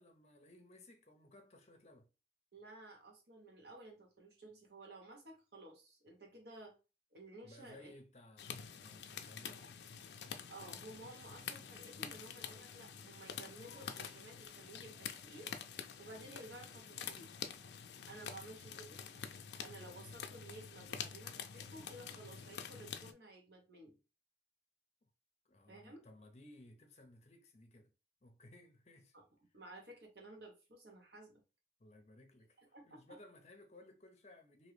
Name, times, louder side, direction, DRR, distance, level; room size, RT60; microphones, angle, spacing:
voice 1, 0.0-2.1 7.4-9.6 25.4-27.9 28.2-29.1 31.8-34.7, left 1 dB, 40° left, 0.6 m, -59 dB
voice 2, 2.5-6.7 7.1-8.0 10.5-15.5 16.0-17.3 18.1-19.0 19.6-24.0 25.7-26.0 29.1-29.2 29.5-31.4 32.6-33.0, right 2 dB, 70° right, 1.2 m, -54 dB
raindrops falling on leaves, 8.4-23.1, left 7 dB, 75° left, 0.4 m, -47 dB
3.0 x 2.7 x 3.2 m
head